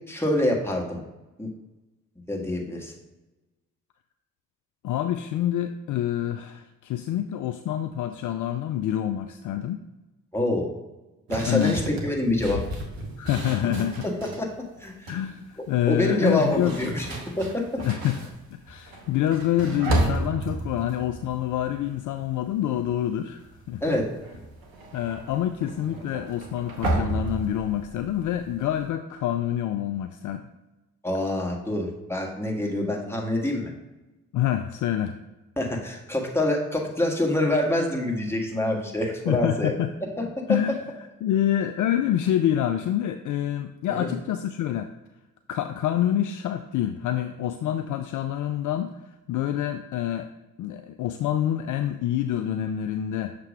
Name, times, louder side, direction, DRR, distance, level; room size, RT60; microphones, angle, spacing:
voice 1, 0.1-1.0 1.4-1.5 2.3-2.9 10.3-10.7 11.3-12.6 14.0-14.5 14.8-15.1 15.9-17.1 17.4-17.6 23.8-24.1 31.0-33.7 35.6-39.7 40.2-40.3 43.9-44.1, left 1 dB, 5° left, -1 dB, 1.6 m, -26 dB
voice 2, 4.8-9.8 11.5-11.8 13.2-14.1 15.1-16.8 17.8-18.3 18.7-24.0 24.9-30.5 34.3-35.2 39.3-39.9 40.5-44.9 45.5-48.9 49.3-50.3 50.6-53.4, left 11 dB, 50° left, 9 dB, 0.4 m, -27 dB
sound 1, 11.3-14.5 14.9-15.3 16.2-22.4 22.7-23.1 23.4-28.9, right 1 dB, 80° right, 1.1 m, -32 dB
6.6 x 3.0 x 5.0 m, 1.1 s
hypercardioid pair, 45°, 40 cm